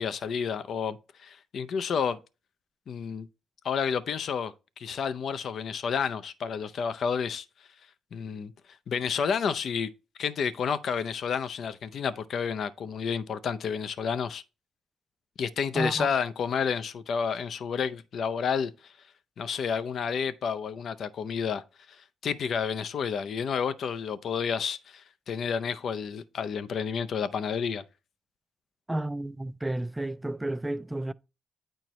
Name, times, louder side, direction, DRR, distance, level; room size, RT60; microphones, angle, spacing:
voice 1, 0.0-2.2 2.9-3.3 3.6-7.4 8.1-8.5 8.9-9.9 10.2-14.4 15.4-18.9 19.4-21.6 22.2-27.8, left 6 dB, 60° left, 0.5 m, -30 dB
voice 2, 15.7-16.1 28.9-31.1, right 1 dB, 10° right, 0.3 m, -31 dB
8.9 x 4.4 x 3.1 m
cardioid pair, 90°, 0 cm